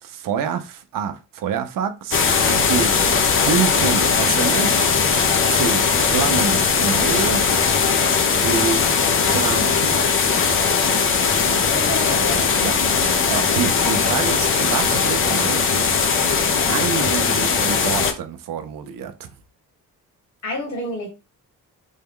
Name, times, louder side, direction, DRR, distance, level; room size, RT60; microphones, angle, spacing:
voice 1, 0.0-3.0 3.3-4.9 5.5-7.5 8.3-8.9 9.3-10.3 12.6-16.0 16.7-19.3, right 7 dB, 75° right, 0.6 m, -27 dB
sound 1, 2.1-18.1, left 5 dB, 40° left, 0.5 m, -19 dB
voice 2, 11.5-12.5 12.9-13.6 20.4-21.1, left 1 dB, 55° left, 1.7 m, -29 dB
3.5 x 2.2 x 3.6 m
wide cardioid pair, 175°, 33 cm